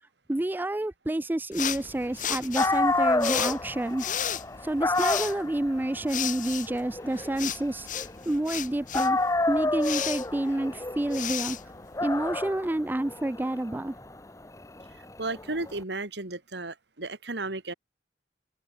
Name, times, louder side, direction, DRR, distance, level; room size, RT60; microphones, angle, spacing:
voice 1, 0.3-4.1 4.6-9.2 9.5-11.6 12.0-13.9, right 1 dB, 10° right, 0.3 m, -29 dB
sound 1, 1.5-12.5, left 10 dB, 45° left, 1.3 m, -35 dB
Dog, 2.3-2.4 2.6-8.6 8.9-15.7, left 2 dB, 20° left, 1.3 m, -30 dB
voice 2, 15.2-17.7, right 2 dB, 75° right, 2.6 m, -34 dB
head